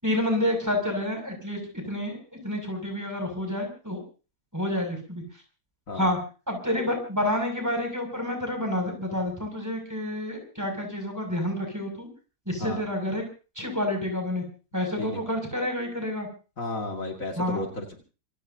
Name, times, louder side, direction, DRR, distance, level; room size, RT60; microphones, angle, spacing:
voice 1, 0.0-4.0 4.5-5.2 5.9-6.2 6.5-12.1 12.5-13.2 13.6-14.4 14.7-16.3 17.4-17.6, left 1 dB, 10° right, 3 dB, 7.0 m, -29 dB
voice 2, 16.6-17.9, left 2 dB, 55° left, 2 dB, 2.8 m, -33 dB
27.0 x 17.0 x 2.9 m, 0.36 s
omnidirectional pair, 1.7 m